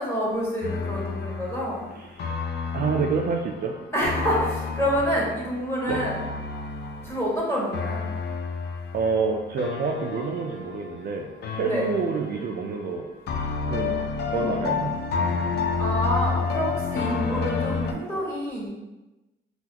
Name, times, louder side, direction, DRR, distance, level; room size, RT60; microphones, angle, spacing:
voice 1, 0.0-1.9 3.9-6.2 7.0-8.1 11.6-11.9 15.8-18.7, equal, 10° left, -6 dB, 1.5 m, -27 dB
sound 1, 0.6-11.1 11.4-12.9 13.3-17.9, left 5 dB, 55° left, 0.5 m, -30 dB
voice 2, 2.7-3.8 5.9-6.0 8.9-13.1 13.7-14.0 14.3-15.0, right 5 dB, 50° right, 2 dB, 0.4 m, -27 dB
3.9 x 2.4 x 2.8 m, 1.0 s
cardioid pair, 90°, 20 cm